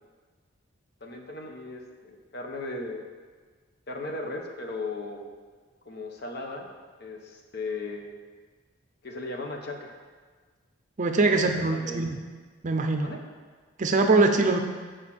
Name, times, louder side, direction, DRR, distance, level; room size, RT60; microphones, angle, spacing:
voice 1, 1.0-3.0 3.9-5.2 5.9-6.7 7.0-8.1 9.0-9.9 11.2-12.1 13.0-13.2, left 2 dB, 50° left, 2 dB, 1.0 m, -37 dB
voice 2, 11.0-12.2 12.6-13.1 13.8-14.6, right 3 dB, 35° right, 5 dB, 0.6 m, -22 dB
8.0 x 4.9 x 6.0 m, 1.5 s
head